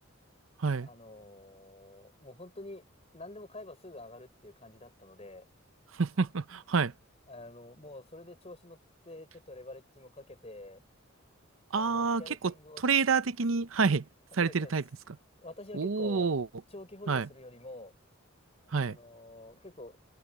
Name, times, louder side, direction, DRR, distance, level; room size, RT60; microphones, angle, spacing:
voice 1, 0.8-2.8 3.1-5.4 7.3-8.8 9.0-10.8 11.7-12.8 14.4-14.7 15.4-16.3 16.7-17.9 18.8-20.0, left 2 dB, 30° left, 6.0 m, -47 dB
voice 2, 5.9-6.9 11.7-14.0 14.3-14.8 15.7-16.5 17.1-17.3 18.7-19.0, right 5 dB, 85° right, 0.7 m, -28 dB
head